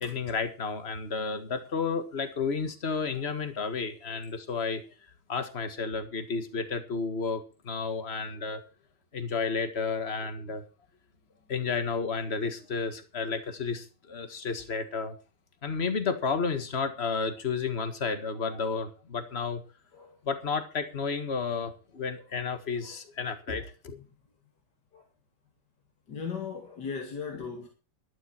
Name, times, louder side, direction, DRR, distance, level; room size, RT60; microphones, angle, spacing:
voice 1, 0.0-4.8 5.3-8.6 9.1-10.6 11.5-15.2 15.6-19.6 20.3-24.0, left 5 dB, 35° left, 1.8 m, -32 dB
voice 2, 26.1-27.7, left 6 dB, 65° left, 2.9 m, -37 dB
12.5 x 11.5 x 4.4 m
omnidirectional pair, 2.0 m